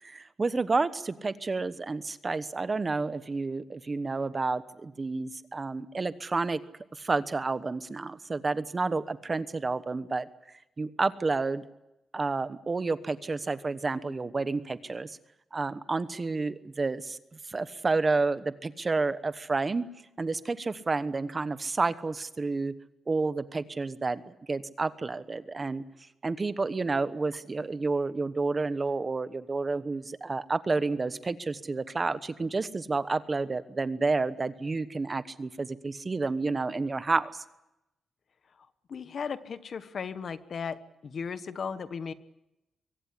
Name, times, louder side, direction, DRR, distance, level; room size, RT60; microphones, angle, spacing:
voice 1, 0.0-6.6 6.9-10.3 10.8-11.6 12.1-15.2 15.5-17.2 17.5-19.8 20.2-22.7 23.1-25.8 26.2-37.4, right 3 dB, 30° right, 13 dB, 1.1 m, -30 dB
voice 2, 38.9-40.8 41.0-42.1, left 6 dB, 55° left, 12 dB, 1.2 m, -36 dB
24.0 x 17.0 x 9.9 m, 0.91 s
cardioid pair, 110°, 0 cm